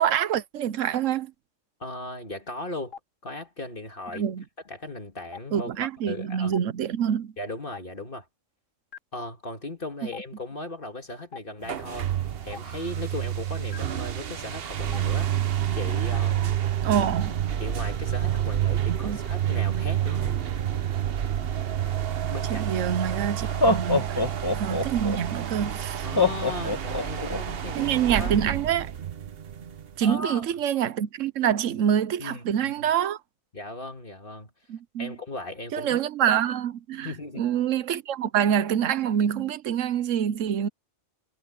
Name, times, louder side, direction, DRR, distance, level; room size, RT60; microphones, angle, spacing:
voice 1, 0.0-1.3 4.1-4.4 5.5-7.3 16.8-17.4 18.9-19.2 22.5-24.2 24.5-26.1 27.7-28.9 30.0-33.2 34.7-35.1 35.7-40.7, right 9 dB, 75° right, 1.1 m, -26 dB
voice 2, 1.8-2.9 3.2-4.3 4.7-6.5 7.4-8.3 9.1-12.1 12.4-15.3 15.7-16.6 17.6-20.4 22.3-22.7 23.9-24.2 26.0-27.9 28.2-28.3 30.0-30.4 32.2-32.9 33.5-34.5 35.0-36.0 37.0-37.5, left 2 dB, 40° left, 2.1 m, -37 dB
Stream, 2.9-3.0 4.1-4.2 5.3-5.4 6.5-6.6 7.7-7.8 8.9-9.0 10.1-10.2 11.3-11.4 12.5-12.6 13.7-13.8 14.9-15.0 16.1-16.2, left 7 dB, 65° left, 4.3 m, -41 dB
sound 1, 11.6-30.1, right 10 dB, 50° right, 1.0 m, -29 dB
Laughter, 22.7-22.8 23.4-25.2 26.2-27.4, left 3 dB, 20° left, 1.3 m, -24 dB
omnidirectional pair, 1.4 m